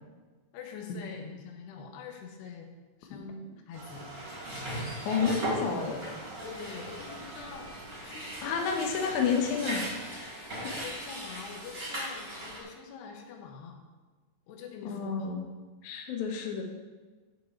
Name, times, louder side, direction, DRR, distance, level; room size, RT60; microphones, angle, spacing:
voice 1, 0.5-2.7 3.0-4.1 6.4-7.7 8.0-8.8 9.1-9.2 10.6-13.8 14.5-15.4, left 5 dB, 85° left, 3 dB, 3.2 m, -45 dB
sound 1, 3.7-10.4, right 2 dB, 60° right, 2.6 m, -47 dB
sound 2, 3.9-12.6, equal, 30° right, 1.1 m, -38 dB
voice 2, 5.0-6.0 8.4-9.8 14.9-15.5 15.8-16.6, left 6 dB, 65° left, 2 dB, 2.1 m, -30 dB
12.5 x 5.3 x 4.5 m, 1.3 s
omnidirectional pair, 4.7 m